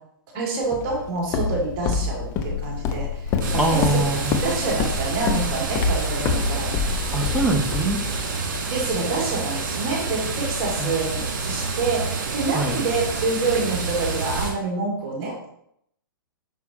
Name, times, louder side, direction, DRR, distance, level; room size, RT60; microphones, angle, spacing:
voice 1, 0.3-4.0 4.4-6.7 8.7-15.5, right 3 dB, 35° right, -2 dB, 2.3 m, -27 dB
Walk footsteps, 0.7-8.6, left 5 dB, 25° left, 0.8 m, -27 dB
Hew Suwat Waterfalls Khao Yai National Park Thailand, 3.4-14.5, right 4 dB, 50° right, 2.5 m, -28 dB
voice 2, 3.5-4.4 7.1-8.0 10.8-11.0 12.5-12.8, right 2 dB, 5° right, 1 dB, 1.1 m, -23 dB
9.3 x 6.2 x 3.0 m, 0.72 s
figure-of-eight pair, 115°, 12 cm